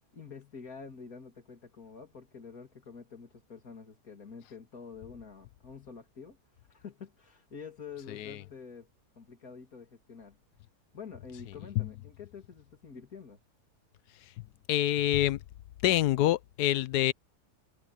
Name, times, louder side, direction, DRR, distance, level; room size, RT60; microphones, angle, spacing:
voice 1, 0.1-8.9 9.2-10.4 10.9-13.4, left 5 dB, 65° left, 3.3 m, -47 dB
voice 2, 8.1-8.4 11.8-11.9 14.7-15.4 15.8-17.1, left 14 dB, 85° left, 1.2 m, -26 dB
omnidirectional pair, 1.7 m